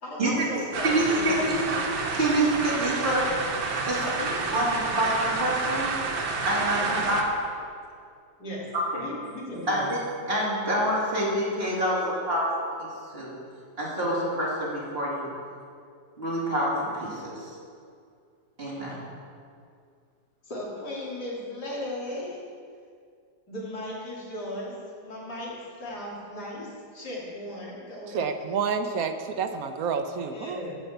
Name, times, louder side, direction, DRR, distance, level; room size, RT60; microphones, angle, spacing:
voice 1, 0.0-1.8 4.0-4.9 6.6-7.2 8.4-8.6 9.0-9.9 20.5-22.4 23.5-24.7 25.0-25.5 25.8-28.3 30.3-30.7, left 1 dB, 70° left, -5 dB, 3.2 m, -36 dB
sound 1, 0.7-7.2, right 3 dB, 85° right, 1.8 m, -29 dB
voice 2, 0.8-1.6 2.1-3.5 3.8-4.0 4.5-5.9 6.4-7.2 8.7-9.0 9.7-10.0 10.3-12.5 12.8-12.9 13.1-13.3 13.8-15.3 16.2-17.4 18.6-19.0, right 1 dB, 35° right, -7 dB, 3.2 m, -26 dB
voice 3, 28.1-30.6, right 6 dB, 65° right, 7 dB, 1.1 m, -29 dB
15.0 x 5.5 x 6.7 m, 2.3 s
omnidirectional pair, 1.8 m